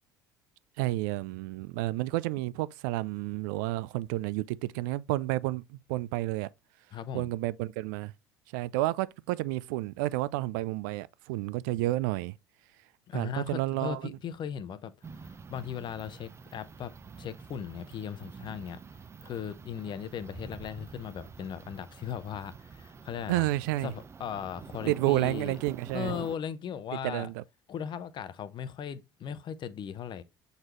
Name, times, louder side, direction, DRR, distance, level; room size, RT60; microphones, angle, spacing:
voice 1, 0.8-6.5 7.1-8.1 8.5-12.3 13.1-14.2 23.3-23.9 24.9-26.1 27.0-27.4, right 17 dB, 70° right, 0.4 m, -30 dB
voice 2, 6.9-7.3 13.1-14.9 15.2-18.8 19.2-23.5 23.8-25.6 25.9-27.3 27.7-30.2, left 8 dB, 45° left, 0.9 m, -38 dB
sound 1, 15.0-26.4, right 5 dB, 25° right, 0.6 m, -47 dB
7.8 x 4.0 x 3.1 m
hypercardioid pair, 65°, 11 cm